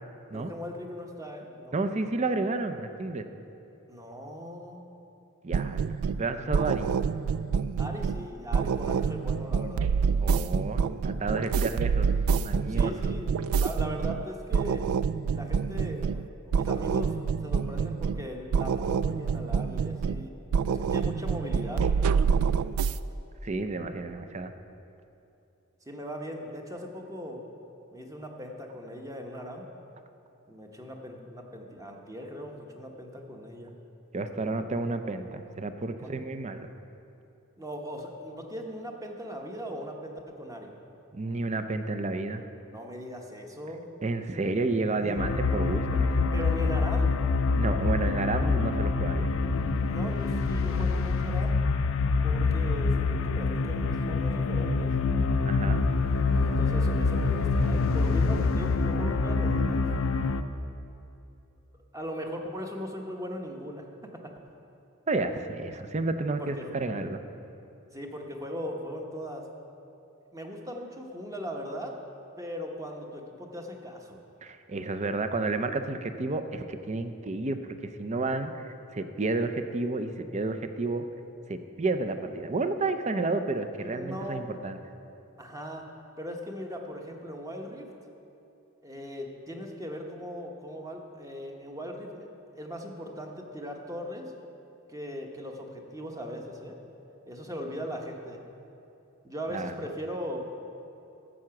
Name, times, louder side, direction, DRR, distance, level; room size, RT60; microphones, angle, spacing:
voice 1, 0.3-1.8 3.9-4.8 7.8-9.9 12.7-14.8 15.2-20.3 20.7-22.2 25.9-27.4 27.9-29.6 30.5-33.7 34.4-34.6 36.0-36.1 37.6-40.7 42.7-43.9 45.0-45.3 46.3-47.2 49.9-51.5 52.2-53.1 53.3-54.9 56.3-59.8 61.9-63.9 65.7-65.8 66.4-66.8 67.9-69.5 70.3-71.9 72.4-74.2 83.8-84.5 85.4-85.8 86.2-87.9 88.8-94.3 94.9-96.7 97.3-98.4 99.2-100.6, equal, 15° right, 2 dB, 1.0 m, -39 dB
voice 2, 1.7-3.3 5.4-6.9 10.2-12.9 23.4-24.5 34.1-36.7 41.1-42.4 44.0-46.3 47.6-49.3 55.4-55.8 65.1-67.2 74.4-81.0 81.5-84.8 99.5-99.7, right 3 dB, 35° right, 9 dB, 0.5 m, -31 dB
sound 1, 5.5-6.3 6.5-8.3 8.5-14.2 14.5-16.2 16.5-18.3 18.5-20.2 20.5-23.0, right 6 dB, 80° right, 0.3 m, -27 dB
sound 2, 45.2-60.4, left 4 dB, 65° left, 0.5 m, -26 dB
12.5 x 7.6 x 5.9 m, 2.8 s
head